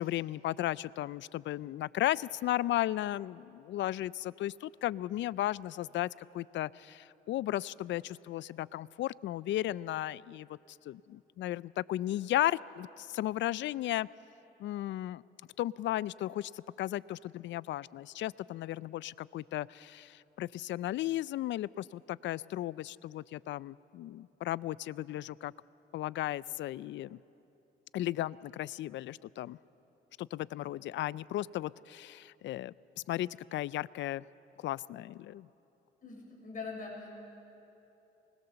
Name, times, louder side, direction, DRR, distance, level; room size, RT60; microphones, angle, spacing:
voice 1, 0.0-14.1 14.6-15.2 15.6-25.5 25.9-27.2 27.9-29.6 30.2-32.7 33.1-34.2 34.6-35.5, left 14 dB, 70° left, 21 dB, 0.4 m, -35 dB
voice 2, 36.0-37.1, left 4 dB, 40° left, -1 dB, 6.8 m, -42 dB
24.5 x 20.5 x 7.0 m, 2.9 s
cardioid pair, 90°, 20 cm